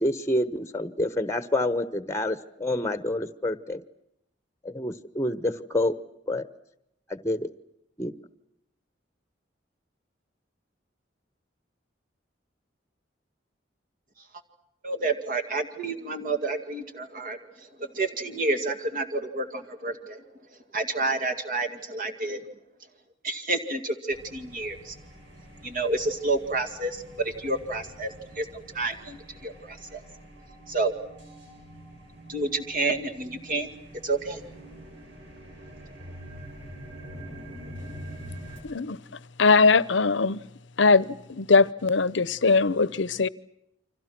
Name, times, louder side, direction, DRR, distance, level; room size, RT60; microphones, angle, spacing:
voice 1, 0.0-3.8 4.6-5.9 6.3-6.5 7.1-7.5 8.0-8.1, left 1 dB, 15° left, 1.1 m, -28 dB
voice 2, 14.8-20.2 20.7-22.4 23.2-25.0 25.6-30.0 30.7-30.9 32.3-33.7 34.0-34.4, right 2 dB, 45° right, 2.2 m, -29 dB
sound 1, 24.1-38.6, equal, 65° right, 7.3 m, -45 dB
voice 3, 38.6-39.0 39.4-40.4 40.8-43.3, left 4 dB, 75° left, 0.9 m, -21 dB
29.5 x 25.5 x 6.1 m
head